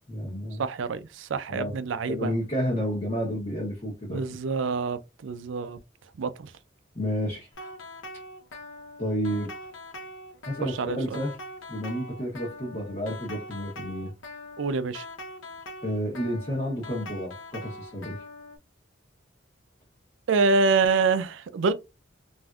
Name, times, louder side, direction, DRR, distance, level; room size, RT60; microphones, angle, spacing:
voice 1, 0.1-0.6 1.5-1.7 2.1-4.2 6.9-7.5 9.0-9.5 10.5-11.3 11.7-14.1 15.8-18.2, equal, 35° left, 0.9 m, -30 dB
voice 2, 0.6-2.3 4.1-5.8 6.2-6.5 10.6-11.2 14.6-15.1 20.3-21.7, right 4 dB, 80° right, 0.4 m, -26 dB
sound 1, 7.5-18.6, left 2 dB, 80° left, 0.7 m, -42 dB
3.4 x 2.6 x 2.3 m
head